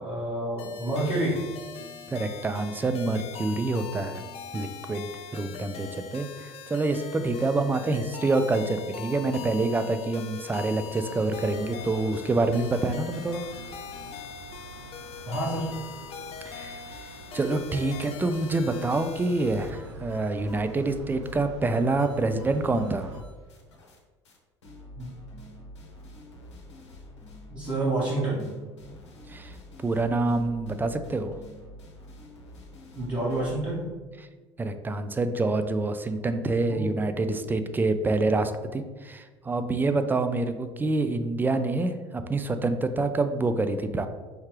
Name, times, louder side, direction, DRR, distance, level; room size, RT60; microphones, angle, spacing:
voice 1, 0.0-1.5 15.2-15.7 20.5-20.6 24.9-25.1 27.5-28.5 32.9-33.9 36.7-36.9, right 1 dB, 30° right, -8 dB, 1.3 m, -28 dB
sound 1, 0.6-19.7, left 7 dB, 40° left, 0.5 m, -42 dB
voice 2, 2.1-4.2 4.5-5.1 5.3-13.5 16.5-17.0 17.3-23.2 29.3-29.6 29.8-31.3 34.6-44.1, right 2 dB, 15° right, 9 dB, 0.4 m, -27 dB
sound 2, 11.0-23.2, right 3 dB, 85° right, 0.5 m, -47 dB
sound 3, 19.4-24.0 24.2-24.4 24.6-33.9, left 1 dB, 80° left, 0.7 m, -47 dB
4.8 x 3.2 x 3.1 m, 1.3 s
figure-of-eight pair, 65°, 14 cm